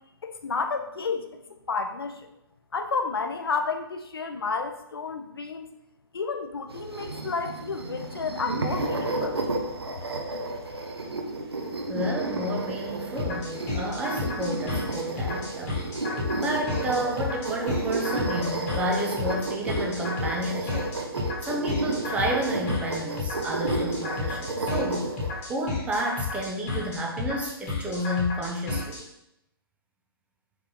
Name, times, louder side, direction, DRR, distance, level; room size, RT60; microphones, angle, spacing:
voice 1, 0.2-1.3 1.7-2.3 2.7-5.7 6.1-9.4, left 4 dB, 70° left, 6 dB, 0.5 m, -31 dB
sound 1, 6.7-25.4, right 2 dB, 85° right, 0.7 m, -32 dB
voice 2, 11.9-15.9 16.4-20.9 21.4-25.1 25.5-29.0, equal, 10° right, -1 dB, 0.5 m, -31 dB
sound 2, 13.2-29.0, left 4 dB, 35° left, 1.2 m, -32 dB
4.1 x 3.6 x 2.8 m, 0.82 s
figure-of-eight pair, 130°, 13 cm